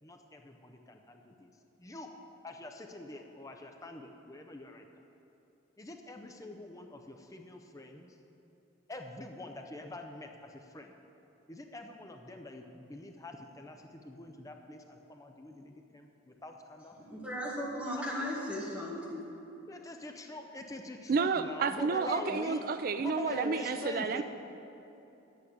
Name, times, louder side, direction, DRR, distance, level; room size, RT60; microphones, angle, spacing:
voice 1, 0.0-1.5 1.8-2.1 2.4-4.9 5.8-8.1 8.9-10.9 11.5-17.0 19.7-22.6 23.0-24.2, left 2 dB, 15° left, 4 dB, 0.5 m, -44 dB
voice 2, 17.0-19.2, equal, 5° right, -6 dB, 2.0 m, -36 dB
voice 3, 21.1-24.2, right 5 dB, 45° right, 10 dB, 0.3 m, -30 dB
9.7 x 8.5 x 6.6 m, 2.9 s
head